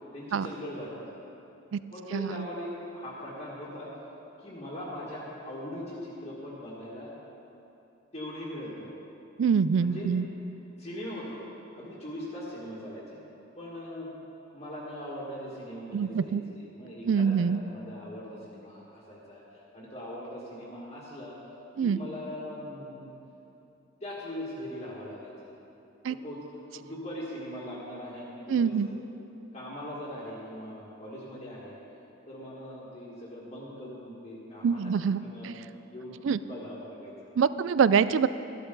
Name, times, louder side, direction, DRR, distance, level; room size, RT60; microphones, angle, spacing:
voice 1, 0.1-1.1 1.9-3.9 4.4-7.1 8.1-8.9 9.8-10.1 10.8-11.4 11.7-13.0 13.6-14.1 14.5-21.4 21.8-23.1 24.0-25.5 26.1-26.4 26.7-29.0 29.5-31.8 32.3-34.9 35.2-35.6 35.9-37.3, left 1 dB, 30° left, -9 dB, 1.8 m, -40 dB
voice 2, 2.1-2.5 9.4-10.3 15.9-16.4 17.1-17.6 21.8-22.0 26.0-26.2 28.5-28.9 34.6-35.5 36.2-36.4 37.4-38.3, right 6 dB, 65° right, 15 dB, 0.3 m, -25 dB
14.0 x 12.0 x 3.9 m, 2.9 s
head